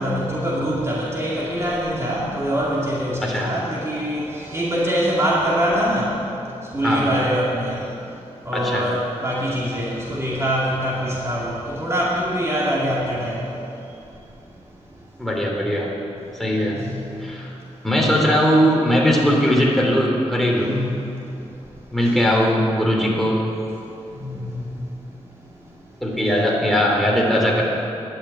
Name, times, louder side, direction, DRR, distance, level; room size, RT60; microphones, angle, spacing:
voice 1, 0.0-14.6 14.9-15.1 16.2-17.7 20.6-22.1 23.8-26.0, equal, 25° right, -6 dB, 2.4 m, -25 dB
voice 2, 3.2-3.5 6.8-7.1 8.5-8.9 15.2-15.9 16.4-16.8 17.2-17.5 17.8-20.7 21.9-23.4 26.0-27.6, equal, ahead, -2 dB, 3.0 m, -19 dB
11.5 x 9.0 x 8.3 m, 2.7 s
wide cardioid pair, 90°, 12 cm